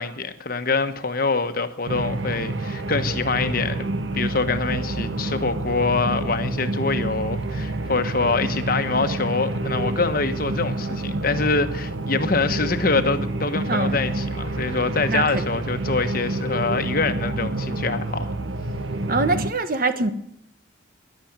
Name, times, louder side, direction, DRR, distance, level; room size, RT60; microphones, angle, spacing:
voice 1, 0.0-3.9 4.1-18.3, left 4 dB, 50° left, 1.2 m, -25 dB
sound 1, 1.9-19.5, right 2 dB, 80° right, 1.0 m, -28 dB
voice 2, 13.7-14.0 15.1-15.4 19.1-20.1, right 3 dB, 45° right, 1.2 m, -23 dB
14.0 x 11.5 x 8.9 m
head